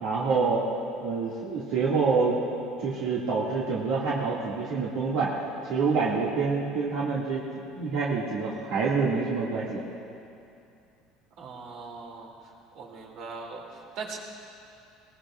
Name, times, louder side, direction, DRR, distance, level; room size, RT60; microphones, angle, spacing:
voice 1, 0.0-0.7 1.0-2.4 2.8-5.3 5.6-7.4 7.7-9.8, right 4 dB, 75° right, -6 dB, 2.2 m, -27 dB
voice 2, 11.4-12.3 12.7-14.2, right 4 dB, 60° right, -1 dB, 2.8 m, -40 dB
20.5 x 20.0 x 2.5 m, 2.6 s
cardioid pair, 145°, 0 cm